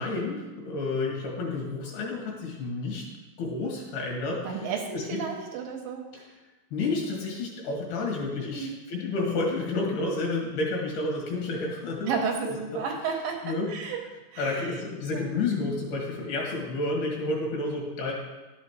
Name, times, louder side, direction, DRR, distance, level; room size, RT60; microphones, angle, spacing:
voice 1, 0.0-3.0 3.4-4.6 4.9-5.2 6.1-6.2 6.7-12.1 12.4-12.6 13.4-13.7 14.4-18.1, left 3 dB, 75° left, -2 dB, 3.6 m, -30 dB
voice 2, 4.4-6.3 8.5-8.8 12.1-14.0 14.3-14.8 15.1-15.4, right 5 dB, 75° right, 1 dB, 2.4 m, -32 dB
11.5 x 7.3 x 3.1 m, 1.2 s
omnidirectional pair, 4.5 m